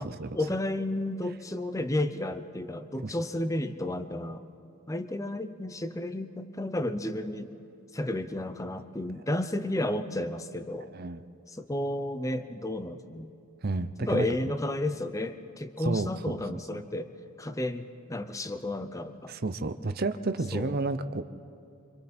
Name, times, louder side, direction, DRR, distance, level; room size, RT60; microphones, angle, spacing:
voice 1, 0.3-4.4 4.9-7.5 7.9-10.9 11.5-13.3 14.0-17.1 17.4-19.4 20.5-20.8, left 1 dB, 15° left, 11 dB, 0.6 m, -32 dB
voice 2, 13.6-14.3 15.8-16.4 19.3-21.2, right 3 dB, 45° right, 10 dB, 0.6 m, -31 dB
26.5 x 25.0 x 4.4 m, 2.7 s
head